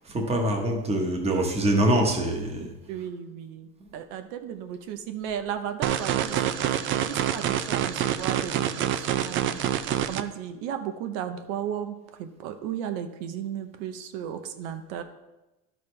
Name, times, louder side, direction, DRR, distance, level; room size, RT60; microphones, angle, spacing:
voice 1, 0.1-2.7, right 1 dB, 20° right, 2 dB, 1.2 m, -24 dB
voice 2, 2.9-6.7 7.1-9.6 10.1-15.0, right 9 dB, 85° right, 8 dB, 0.9 m, -35 dB
sound 1, 5.8-10.2, right 10 dB, 40° right, 0.4 m, -26 dB
12.0 x 6.5 x 3.3 m, 1.0 s
cardioid pair, 165°, 33 cm